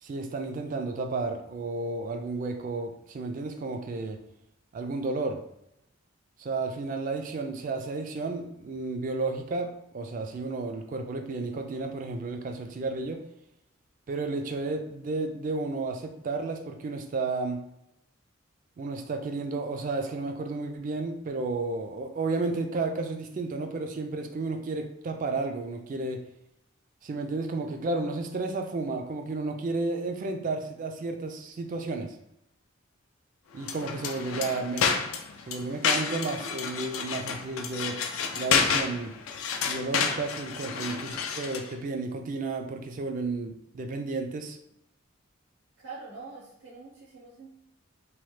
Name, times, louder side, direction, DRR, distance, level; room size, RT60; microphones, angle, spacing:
voice 1, 0.0-4.2 4.7-5.4 6.4-13.2 14.1-17.6 18.8-26.2 27.0-32.2 33.5-35.2 35.5-39.1 39.6-44.6, right 3 dB, 40° right, 5 dB, 0.3 m, -32 dB
sound 1, 33.6-41.7, left 6 dB, 80° left, 0.4 m, -30 dB
voice 2, 45.8-47.6, right 4 dB, 70° right, -7 dB, 0.7 m, -44 dB
3.0 x 2.1 x 3.1 m, 0.82 s
head